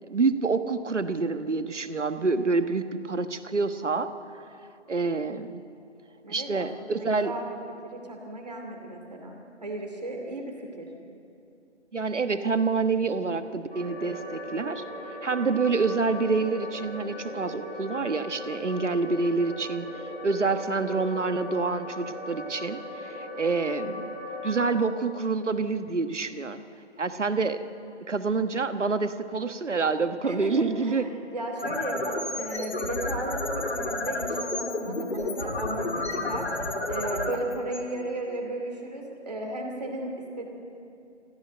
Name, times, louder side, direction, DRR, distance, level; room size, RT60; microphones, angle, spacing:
voice 1, 0.0-4.1 4.9-5.6 6.3-7.3 11.9-14.8 15.2-19.9 20.2-24.1 24.4-26.6 27.0-27.6 28.1-31.1, right 4 dB, 75° right, 10 dB, 1.3 m, -27 dB
voice 2, 6.2-7.6 7.8-10.9 30.2-36.5 36.9-40.4, right 1 dB, 35° right, 2 dB, 2.6 m, -35 dB
sound 1, 13.7-24.6, left 1 dB, 5° left, 1.7 m, -38 dB
sound 2, 31.4-38.5, left 2 dB, 60° left, 2.5 m, -31 dB
22.0 x 15.0 x 7.8 m, 2.7 s
figure-of-eight pair, 175°, 36 cm